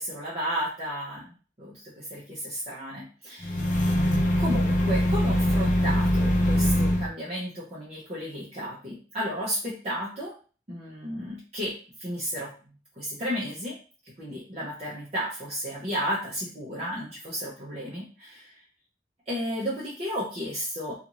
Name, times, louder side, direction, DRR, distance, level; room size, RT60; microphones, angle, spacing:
voice 1, 0.0-3.7 4.4-10.3 10.7-11.7 12.0-12.5 13.0-13.7 14.2-18.5 19.3-21.0, equal, 35° right, -8 dB, 0.8 m, -33 dB
sound 1, 3.4-7.1, equal, 45° left, 0.6 m, -23 dB
2.6 x 2.4 x 2.9 m, 0.37 s
head